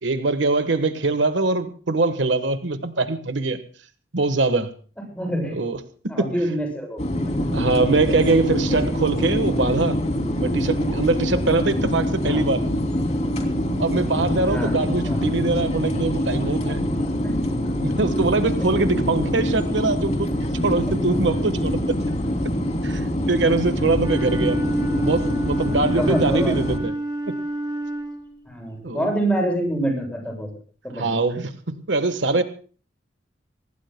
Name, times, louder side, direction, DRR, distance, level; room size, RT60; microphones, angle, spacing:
voice 1, 0.0-3.6 4.1-4.7 5.5-5.8 6.2-6.3 7.5-10.0 10.4-12.6 13.8-16.9 17.8-20.3 20.6-22.0 22.8-24.6 25.0-26.9 27.3-27.4 28.8-29.1 30.9-32.4, right 3 dB, 80° right, 9 dB, 1.3 m, -23 dB
voice 2, 5.1-5.6 6.1-7.0 8.1-8.2 11.9-12.5 14.5-14.8 15.0-15.2 17.2-17.4 24.7-24.9 26.0-26.6 28.5-30.5 30.8-31.3, right 1 dB, 5° left, 0 dB, 7.6 m, -26 dB
sound 1, 7.0-26.8, equal, 40° left, 2.8 m, -24 dB
Wind instrument woodwind instrument, 23.9-28.5, right 1 dB, 25° right, 4.0 m, -29 dB
25.5 x 19.0 x 2.2 m, 0.41 s
head